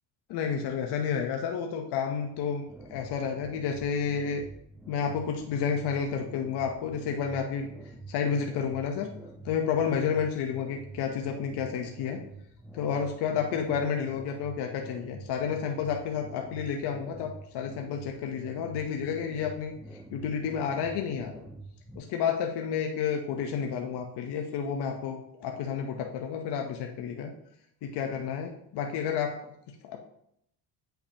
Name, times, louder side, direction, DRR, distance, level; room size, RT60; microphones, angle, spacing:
voice 1, 0.3-4.4 4.9-7.7 8.1-9.1 9.4-12.2 12.7-19.7 20.1-21.4 21.9-27.3 27.8-29.4 29.8-30.0, left 7 dB, 60° left, 3 dB, 0.9 m, -30 dB
sound 1, 2.7-22.0, right 2 dB, 5° right, 0.8 m, -47 dB
8.3 x 5.8 x 2.9 m, 0.74 s
cardioid pair, 105°, 44 cm